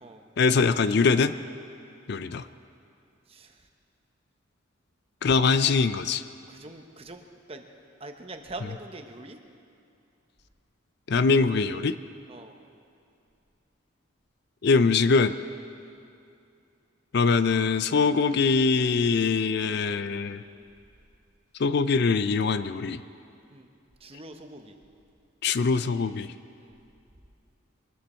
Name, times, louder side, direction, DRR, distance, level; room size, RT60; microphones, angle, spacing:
voice 1, 0.4-1.3 2.1-2.5 5.2-6.2 11.1-12.0 14.6-15.3 17.1-20.4 21.6-23.0 25.4-26.3, left 4 dB, 55° left, 13 dB, 0.4 m, -23 dB
voice 2, 3.3-3.6 5.2-5.8 6.5-7.6 8.0-9.4 12.3-12.5 15.8-16.0 23.5-23.7 24.0-24.8 26.6-26.8, right 2 dB, 30° right, 5 dB, 1.0 m, -43 dB
23.5 x 13.0 x 4.4 m, 2.5 s
head